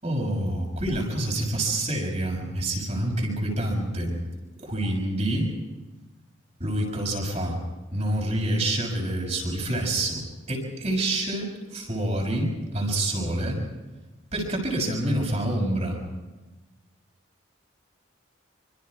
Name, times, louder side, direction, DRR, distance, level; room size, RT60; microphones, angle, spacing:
voice 1, 0.0-4.2 4.6-5.5 6.6-7.6 7.9-13.6 14.3-16.0, right 1 dB, 35° right, -1 dB, 6.4 m, -27 dB
27.0 x 25.5 x 4.9 m, 1.2 s
head